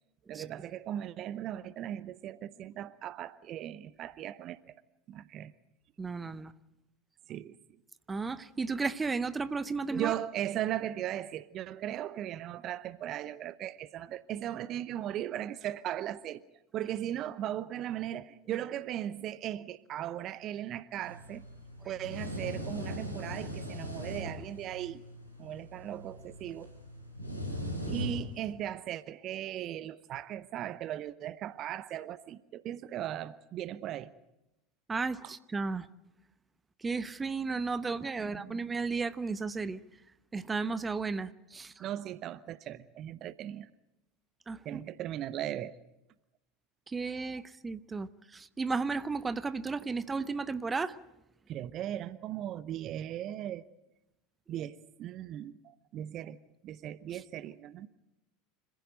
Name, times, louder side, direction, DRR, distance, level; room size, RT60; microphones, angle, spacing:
voice 1, 0.3-4.7 5.1-5.5 7.3-7.5 9.9-16.4 16.7-21.5 21.8-25.0 25.4-26.7 27.9-34.1 35.2-35.3 38.2-38.6 41.8-43.7 44.6-45.7 51.5-53.6 54.5-56.4 56.6-57.9, right 11 dB, 40° right, 0.8 m, -38 dB
voice 2, 6.0-6.5 8.1-10.2 27.9-28.0 34.9-35.9 36.8-39.8 40.3-41.8 44.5-44.8 46.9-51.0, right 4 dB, 20° right, 0.8 m, -34 dB
sound 1, 21.0-28.5, equal, 90° left, 4.3 m, -40 dB
26.5 x 15.5 x 9.1 m
figure-of-eight pair, 75°, 0 cm